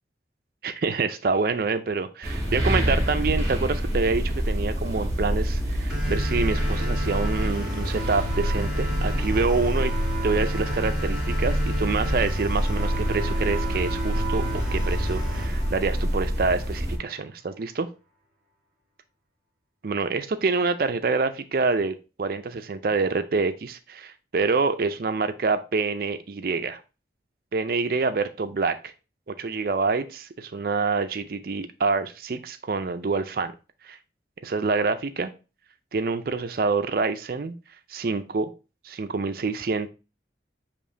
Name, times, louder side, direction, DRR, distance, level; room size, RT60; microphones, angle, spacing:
voice 1, 0.6-9.9 10.2-17.9 19.8-26.8 27.5-28.9 29.3-33.5 33.8-34.0 34.4-35.3 35.9-37.5 37.9-38.5 38.8-39.9, right 4 dB, 55° right, 9 dB, 0.4 m, -26 dB
sound 1, 2.2-17.0, equal, 20° right, 1.5 m, -26 dB
sound 2, 5.9-16.9, equal, ahead, 1.5 m, -34 dB
6.7 x 3.0 x 2.6 m, 0.31 s
head